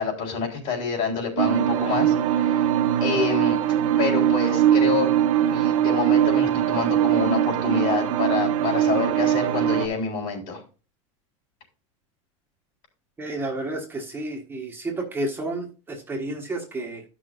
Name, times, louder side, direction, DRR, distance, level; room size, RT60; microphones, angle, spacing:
voice 1, 0.0-2.7 3.0-3.6 4.0-5.1 5.5-10.6, left 5 dB, 50° left, -1 dB, 4.0 m, -27 dB
sound 1, 1.4-9.9, right 10 dB, 80° right, 1.2 m, -21 dB
voice 2, 13.2-17.0, right 2 dB, 15° right, -1 dB, 1.4 m, -31 dB
13.0 x 6.1 x 2.6 m, 0.34 s
supercardioid pair, 145°, 16 cm